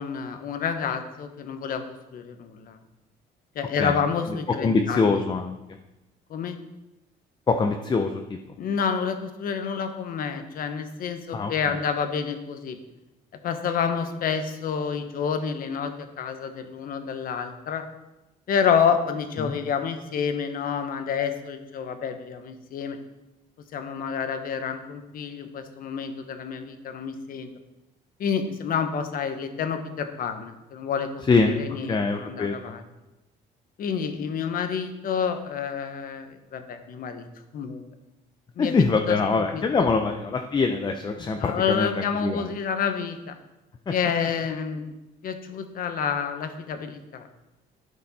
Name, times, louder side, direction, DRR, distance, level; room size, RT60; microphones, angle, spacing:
voice 1, 0.0-1.8 2.1-2.8 3.5-5.2 6.3-6.6 8.6-12.8 13.4-17.8 18.5-23.0 23.7-27.5 28.2-31.2 31.6-32.8 33.8-37.2 37.5-37.8 38.6-38.7 39.1-39.9 41.4-43.3 43.9-44.9 45.2-47.2, left 6 dB, 55° left, 8 dB, 1.1 m, -28 dB
voice 2, 3.8-5.6 7.5-8.4 11.3-11.8 19.4-19.6 31.3-32.8 38.6-42.6 43.9-44.0, left 4 dB, 25° left, 5 dB, 0.7 m, -24 dB
12.0 x 5.3 x 4.2 m, 0.99 s
cardioid pair, 110°, 17 cm